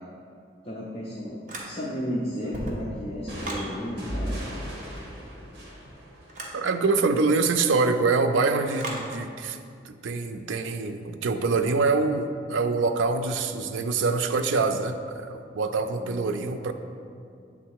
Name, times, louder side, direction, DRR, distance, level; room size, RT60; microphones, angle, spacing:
voice 1, 0.6-4.4 15.9-16.6, equal, 30° left, -5 dB, 0.6 m, -34 dB
sound 1, 1.5-2.1 2.4-3.7 6.3-6.6 8.8-9.1, right 1 dB, 40° right, 0.9 m, -35 dB
sound 2, 3.3-6.9, equal, 60° right, 1.4 m, -37 dB
voice 2, 6.5-9.6 9.8-16.7, right 4 dB, 90° right, 8 dB, 0.4 m, -25 dB
8.1 x 3.6 x 4.7 m, 2.3 s
head